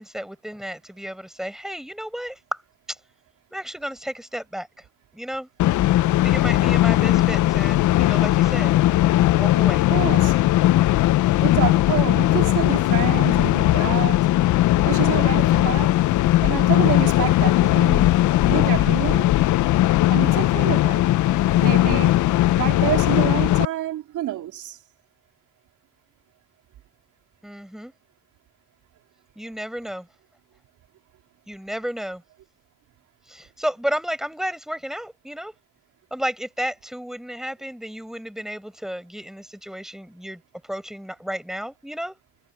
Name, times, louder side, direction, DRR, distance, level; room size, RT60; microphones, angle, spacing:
voice 1, 0.0-2.6 2.9-3.0 3.5-4.8 5.1-5.5 6.2-8.7 9.3-9.8 21.3-21.7 27.4-27.9 29.3-30.1 31.5-32.2 33.3-35.5 36.1-42.2, equal, ahead, 4.9 m, -32 dB
sound 1, 5.6-23.7, left 15 dB, 75° left, 0.6 m, -18 dB
voice 2, 9.9-10.3 11.4-14.3 14.8-16.0 16.4-18.1 18.5-19.3 20.1-21.1 21.6-24.8, right 13 dB, 80° right, 3.4 m, -28 dB
cardioid pair, 90°, 30 cm